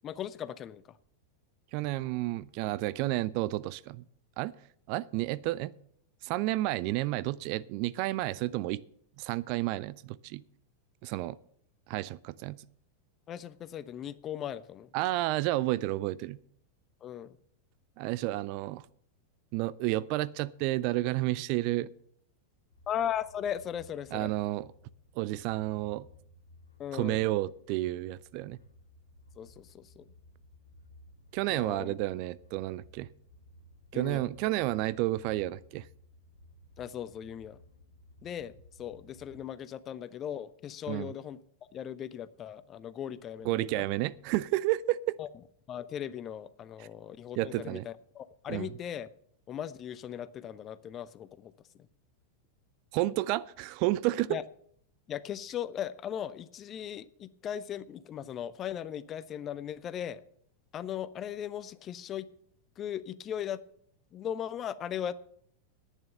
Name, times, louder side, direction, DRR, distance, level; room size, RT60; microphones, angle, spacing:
voice 1, 0.0-1.0 13.3-14.9 17.0-17.4 22.9-24.3 26.8-27.2 29.4-30.1 31.5-32.0 33.9-34.3 36.8-37.6 38.2-41.4 41.7-43.9 45.2-45.3 45.7-49.1 49.5-51.9 54.3-54.4 55.1-60.2 60.7-62.3 62.8-63.6 64.1-65.1, left 9 dB, 30° left, 0.6 m, -38 dB
voice 2, 1.7-4.0 4.4-4.5 4.9-5.7 6.2-8.8 9.2-10.4 11.0-11.4 11.9-12.6 14.9-16.4 18.0-18.8 19.5-21.9 24.1-24.7 25.2-26.1 26.9-28.6 31.3-33.1 33.9-35.9 40.9-41.1 43.5-45.2 47.4-47.8 48.5-48.7 52.9-54.4, right 17 dB, 45° right, 0.4 m, -31 dB
sound 1, 22.7-39.4, left 1 dB, 75° left, 1.7 m, -57 dB
10.5 x 9.3 x 6.8 m
figure-of-eight pair, 90°, 0 cm